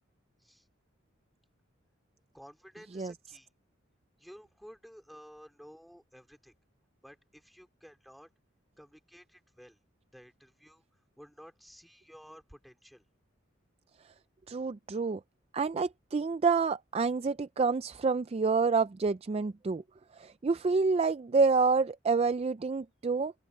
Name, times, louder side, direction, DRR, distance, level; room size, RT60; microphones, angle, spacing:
voice 1, 2.3-3.5 4.2-6.5 7.0-8.3 8.8-9.8 10.1-10.8 11.2-13.0, equal, ahead, 4.0 m, -53 dB
voice 2, 14.5-15.2 15.5-19.8 20.2-23.3, right 4 dB, 30° right, 0.4 m, -28 dB
open air
head